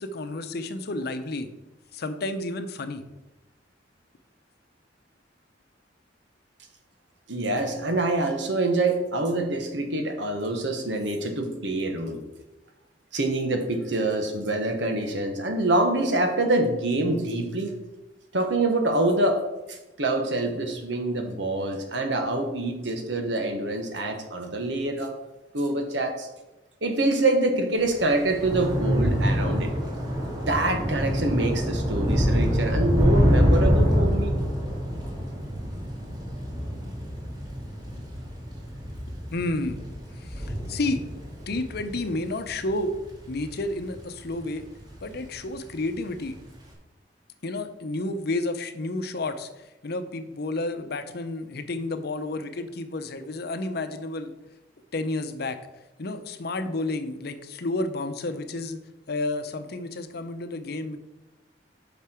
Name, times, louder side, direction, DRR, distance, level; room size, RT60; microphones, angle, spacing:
voice 1, 0.0-1.5 1.9-3.0 39.3-39.8 40.2-41.0 41.5-42.9 43.3-44.7 45.0-46.4 47.4-49.5 49.8-54.3 54.9-55.6 56.0-58.8 59.1-61.0, left 2 dB, 60° left, 9 dB, 0.7 m, -31 dB
voice 2, 7.3-12.2 13.1-17.8 18.3-19.4 19.7-25.1 25.5-26.3 26.8-29.7 30.5-34.4, right 2 dB, 80° right, 5 dB, 1.4 m, -26 dB
Thunder / Rain, 27.9-44.4 44.8-45.2 45.5-45.7, equal, 25° right, 2.0 m, -26 dB
8.3 x 5.9 x 4.5 m, 1.0 s
head